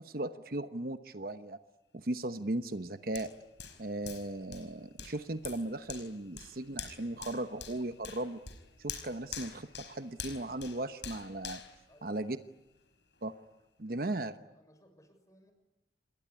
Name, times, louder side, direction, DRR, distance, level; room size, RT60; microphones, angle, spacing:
voice 1, 0.0-1.6 1.9-3.3 3.8-8.4 8.8-11.6 12.0-12.4 13.2-13.3 13.8-14.3, right 1 dB, 50° right, 10 dB, 1.0 m, -37 dB
Hands, 3.1-12.7 13.1-13.3, left 7 dB, 75° left, 5.1 m, -46 dB
voice 2, 11.9-12.5 13.8-14.2 14.5-15.5, equal, 20° left, 7 dB, 6.3 m, -62 dB
28.0 x 21.0 x 10.0 m, 1.0 s
head